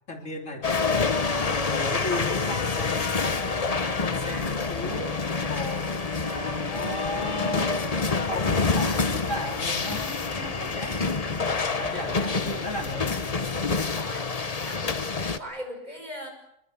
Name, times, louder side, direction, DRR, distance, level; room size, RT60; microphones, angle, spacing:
voice 1, 0.1-1.2 1.4-3.3 4.0-7.8 8.2-10.1 10.4-11.0 11.6-13.2, left 2 dB, 85° left, 3 dB, 3.6 m, -36 dB
sound 1, 0.6-15.4, left 4 dB, 35° left, 1.1 m, -27 dB
sound 2, 1.0-13.9, right 1 dB, 80° right, 7.1 m, -42 dB
voice 2, 13.7-16.3, equal, 35° right, 4 dB, 5.8 m, -40 dB
25.0 x 23.0 x 7.2 m, 0.78 s
omnidirectional pair, 1.3 m